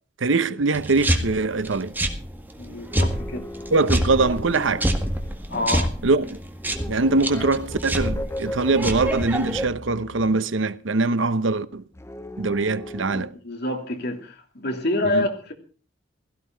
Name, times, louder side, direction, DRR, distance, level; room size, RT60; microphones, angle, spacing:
voice 1, 0.2-1.9 3.7-4.9 6.0-6.4 6.9-11.8 12.4-13.3 15.1-15.3, right 3 dB, 80° right, 0.9 m, -22 dB
sound 1, 0.7-9.6, right 1 dB, 10° right, 1.8 m, -27 dB
voice 2, 2.6-3.5 5.5-5.9 13.1-15.5, left 1 dB, 60° left, 2.9 m, -27 dB
sound 2, 2.9-5.5 6.6-10.4 11.9-13.3, left 1 dB, 15° left, 0.8 m, -37 dB
16.5 x 15.0 x 4.6 m
head